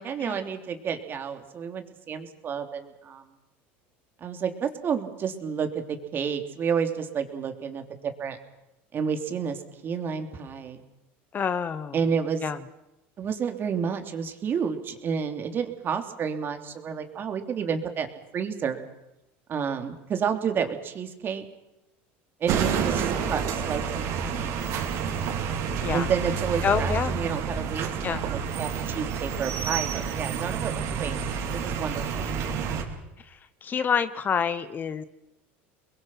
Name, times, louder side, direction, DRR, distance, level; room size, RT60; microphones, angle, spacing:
voice 1, 0.0-3.2 4.2-8.4 8.9-10.8 11.9-12.5 13.2-18.1 18.3-18.8 19.5-21.4 22.4-24.7 25.9-31.2 31.5-32.3, right 6 dB, 35° right, 6 dB, 3.3 m, -30 dB
voice 2, 11.3-11.9 12.4-12.6 25.8-26.1 26.6-27.1 28.0-28.2 33.6-35.0, left 7 dB, 30° left, 15 dB, 1.1 m, -27 dB
sound 1, 22.5-32.8, right 6 dB, 60° right, 4.8 m, -29 dB
30.0 x 22.0 x 5.9 m, 0.91 s
supercardioid pair, 110°, 6 cm